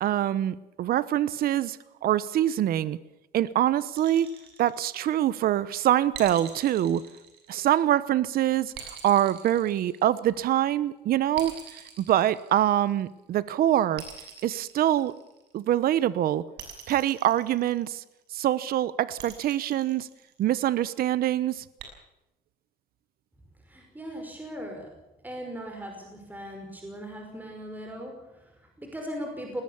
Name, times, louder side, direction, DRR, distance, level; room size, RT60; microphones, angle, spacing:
voice 1, 0.0-3.0 3.3-4.3 4.6-7.0 7.5-8.7 9.0-14.0 14.4-15.1 15.5-16.5 16.9-18.0 18.3-20.1 20.4-21.6, right 12 dB, 65° right, 17 dB, 1.0 m, -24 dB
sound 1, 3.9-5.4 6.1-8.0 8.7-10.5 11.3-13.1 14.0-15.6 16.6-18.1 19.2-20.7 21.8-21.9, right 9 dB, 80° right, 6.3 m, -45 dB
voice 2, 23.6-25.0 25.2-29.6, equal, 10° right, 2 dB, 5.5 m, -39 dB
21.0 x 20.0 x 7.2 m, 0.92 s
cardioid pair, 110°, 17 cm